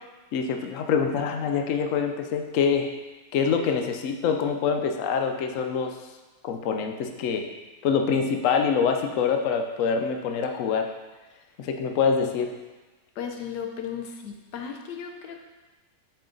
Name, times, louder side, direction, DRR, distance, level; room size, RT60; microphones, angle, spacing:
voice 1, 0.3-2.9 3.3-5.9 6.4-7.5 7.8-10.9 11.6-12.5, left 6 dB, 65° left, 4 dB, 0.9 m, -25 dB
voice 2, 13.2-15.4, left 7 dB, 85° left, 3 dB, 1.3 m, -35 dB
7.4 x 4.7 x 3.8 m, 1.2 s
omnidirectional pair, 1.7 m